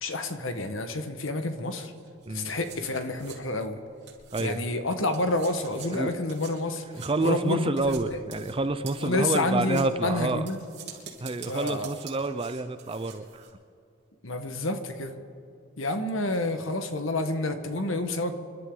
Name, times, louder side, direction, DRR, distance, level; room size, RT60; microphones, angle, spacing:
voice 1, 0.0-1.9 2.3-3.8 4.4-6.8 7.2-8.0 9.0-10.6 11.5-11.9 14.2-15.1 15.8-18.3, left 2 dB, 75° left, 7 dB, 1.4 m, -29 dB
sound 1, 2.0-4.8 5.1-13.5, right 8 dB, 55° right, 3.9 m, -47 dB
voice 2, 4.3-4.7 5.9-6.2 6.9-10.5 11.2-13.4, right 2 dB, 25° right, 11 dB, 0.6 m, -28 dB
28.0 x 12.5 x 3.9 m, 2.5 s
head